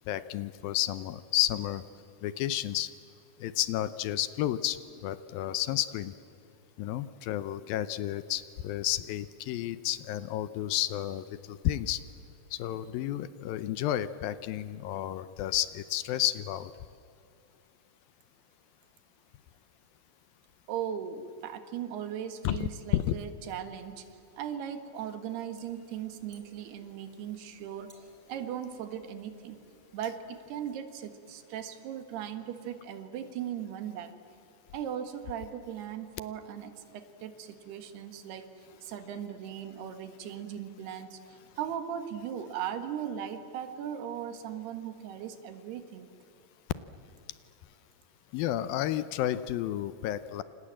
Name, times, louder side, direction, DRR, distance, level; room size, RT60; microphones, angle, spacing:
voice 1, 0.1-1.8 2.2-2.9 3.4-6.1 6.8-12.0 12.5-16.7 22.4-23.2 48.3-50.4, left 13 dB, 75° left, 14 dB, 2.4 m, -31 dB
voice 2, 20.7-27.9 28.3-29.6 29.9-34.1 34.7-46.1, right 9 dB, 90° right, 9 dB, 3.7 m, -38 dB
sound 1, 25.5-30.8, right 1 dB, 5° right, 3.3 m, -64 dB
29.0 x 26.5 x 7.7 m, 2.8 s
omnidirectional pair, 4.5 m